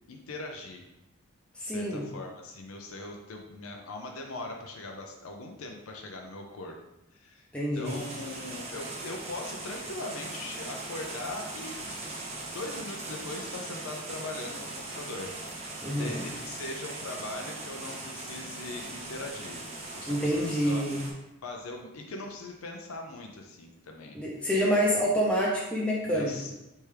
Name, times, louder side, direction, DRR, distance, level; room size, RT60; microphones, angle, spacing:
voice 1, 0.1-0.9 1.6-6.8 7.1-7.5 7.7-11.8 12.1-12.2 12.5-15.3 15.9-20.8 21.4-24.2 26.1-26.5, left 2 dB, 85° left, 2 dB, 0.5 m, -40 dB
voice 2, 1.5-2.0 7.5-8.0 15.8-16.2 20.1-21.0 24.1-26.4, equal, 5° left, -5 dB, 0.6 m, -27 dB
sound 1, 7.8-21.1, right 2 dB, 30° right, 0.8 m, -40 dB
4.3 x 3.4 x 3.3 m, 0.90 s
head